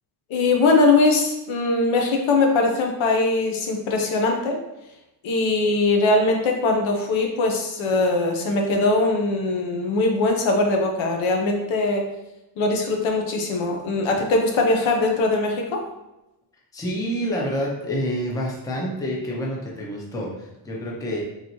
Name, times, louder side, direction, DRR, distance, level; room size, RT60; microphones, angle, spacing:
voice 1, 0.3-4.6 5.2-12.1 12.6-15.8, left 3 dB, 80° left, 2 dB, 0.9 m, -21 dB
voice 2, 16.7-21.2, equal, 10° left, -3 dB, 0.4 m, -28 dB
3.9 x 2.9 x 2.9 m, 0.95 s
cardioid pair, 180°, 47 cm